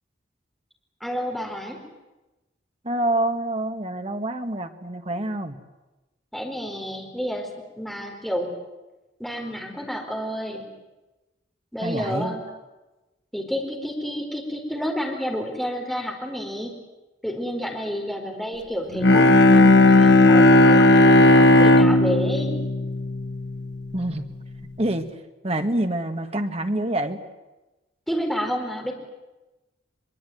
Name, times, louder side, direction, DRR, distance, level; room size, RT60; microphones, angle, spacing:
voice 1, 1.0-1.8 6.3-7.5 7.8-8.5 9.2-10.7 11.7-12.4 13.3-16.7 17.2-22.5 28.1-28.9, equal, ahead, 0 dB, 4.3 m, -30 dB
voice 2, 2.8-5.6 11.8-12.4 23.9-24.3 24.8-25.1 25.4-27.2, right 1 dB, 35° right, 6 dB, 1.7 m, -26 dB
Bowed string instrument, 18.9-23.8, left 2 dB, 65° left, 1.4 m, -15 dB
23.5 x 22.5 x 9.3 m, 1.1 s
head